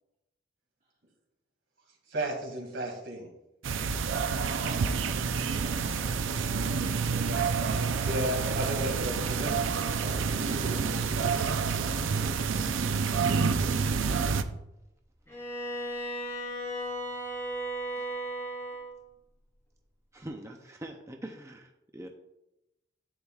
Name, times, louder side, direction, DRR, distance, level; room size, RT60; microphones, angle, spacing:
voice 1, 2.1-3.3 8.0-10.2, right 1 dB, 65° right, 2 dB, 2.2 m, -34 dB
sound 1, 3.6-14.4, right 5 dB, 85° right, 0.5 m, -28 dB
voice 2, 4.5-5.3 10.4-13.7, right 1 dB, 40° right, -2 dB, 1.3 m, -48 dB
Bowed string instrument, 15.3-19.0, right 1 dB, 15° left, 3.2 m, -35 dB
voice 3, 20.1-22.1, right 1 dB, 15° right, 3 dB, 0.6 m, -44 dB
10.5 x 8.1 x 2.4 m, 0.88 s
head